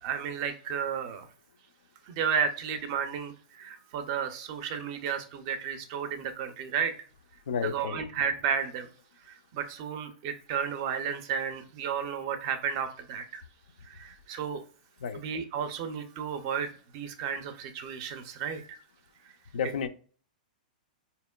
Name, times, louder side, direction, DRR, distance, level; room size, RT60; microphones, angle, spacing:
voice 1, 0.0-1.3 2.1-6.9 7.6-8.9 9.3-13.4 13.8-14.6 15.1-18.8, right 7 dB, 25° right, 0.4 m, -33 dB
voice 2, 7.5-8.0 15.0-15.2 19.5-19.9, left 7 dB, 90° left, 0.4 m, -31 dB
4.3 x 2.8 x 2.2 m
supercardioid pair, 180°, 5 cm